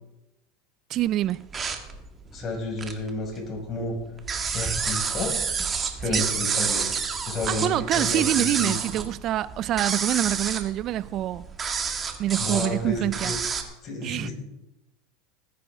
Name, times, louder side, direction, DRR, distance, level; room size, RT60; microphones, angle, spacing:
voice 1, 0.9-1.4 6.1-6.3 7.5-11.5 12.2-13.3 14.0-14.3, right 13 dB, 45° right, 0.4 m, -26 dB
sound 1, 1.3-3.1 3.4-13.6, right 6 dB, 30° right, 1.7 m, -29 dB
voice 2, 2.3-3.9 4.5-5.4 6.0-6.8 7.3-8.7 12.4-13.4 13.8-14.3, left 2 dB, 40° left, 5.3 m, -31 dB
20.0 x 10.0 x 3.5 m
hypercardioid pair, 95°, 0 cm